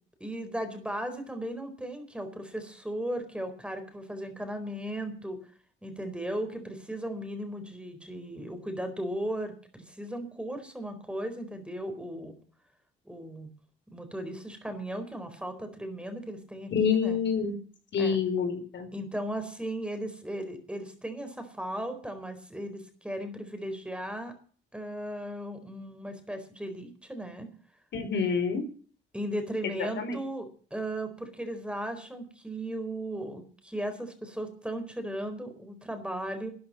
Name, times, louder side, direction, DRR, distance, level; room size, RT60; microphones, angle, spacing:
voice 1, 0.2-5.4 5.8-12.4 13.0-13.5 13.9-17.2 18.0-18.2 18.9-24.3 24.7-27.5 29.1-36.5, right 1 dB, 5° right, 7 dB, 4.3 m, -36 dB
voice 2, 16.7-17.6 17.9-18.9 27.9-28.6 29.6-30.2, left 6 dB, 65° left, 7 dB, 4.3 m, -27 dB
13.0 x 10.0 x 7.6 m, 0.43 s
cardioid pair, 90°, 20 cm